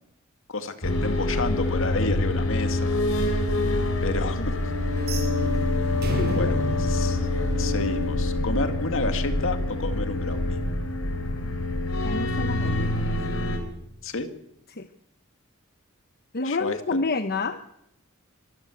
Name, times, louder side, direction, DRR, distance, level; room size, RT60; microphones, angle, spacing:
voice 1, 0.5-3.3 4.0-4.6 6.3-7.2 7.6-10.6 14.0-14.3 16.4-17.0, left 2 dB, 65° left, 8 dB, 2.2 m, -30 dB
sound 1, 0.8-13.6, left 2 dB, 90° left, 3.8 m, -26 dB
sound 2, 5.0-8.1, right 2 dB, 50° right, 6.3 m, -34 dB
voice 2, 6.2-6.7 12.0-13.1 14.7-14.9 16.3-17.7, left 3 dB, 50° left, 9 dB, 1.0 m, -29 dB
25.5 x 14.0 x 8.0 m, 0.77 s
head